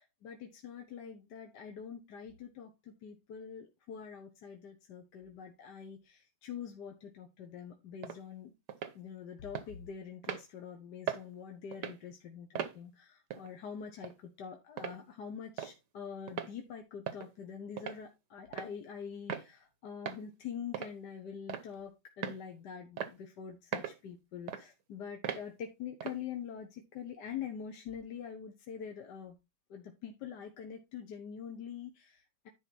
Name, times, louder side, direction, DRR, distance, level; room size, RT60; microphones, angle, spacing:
voice 1, 0.0-8.5 8.9-29.3 29.7-32.5, left 7 dB, 65° left, 1.5 m, -45 dB
sound 1, 8.0-8.2 8.7-9.0 9.5-9.7 10.2-10.4 11.1-11.2 11.7-12.0 12.5-12.8 13.3-13.5 14.0-14.1 14.8-15.0 15.6-15.7 16.3-16.5 17.1-17.3 17.8-18.0 18.5-18.7 19.3-19.5 20.1-20.2 20.7-20.9 21.5-21.7 22.2-22.4 23.0-23.1 23.7-24.0 24.5-24.6 25.2-25.4 26.0-26.2, right 8 dB, 65° right, 1.5 m, -38 dB
10.5 x 4.4 x 4.2 m
omnidirectional pair, 2.2 m